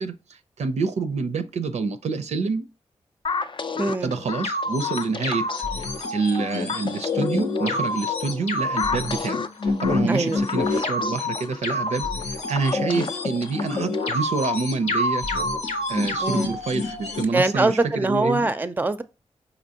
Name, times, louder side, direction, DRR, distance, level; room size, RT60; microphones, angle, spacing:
voice 1, 0.0-2.7 4.0-5.5 5.8-15.2 15.9-18.5, right 4 dB, 75° right, 0.5 m, -27 dB
sound 1, 3.2-14.3, left 5 dB, 45° left, 0.4 m, -32 dB
voice 2, 3.8-4.1 10.1-10.4 16.2-16.5 17.3-19.0, right 2 dB, 15° right, 0.5 m, -23 dB
sound 2, 4.4-17.2, left 2 dB, 90° left, 0.8 m, -27 dB
5.1 x 2.9 x 2.8 m
cardioid pair, 50°, 12 cm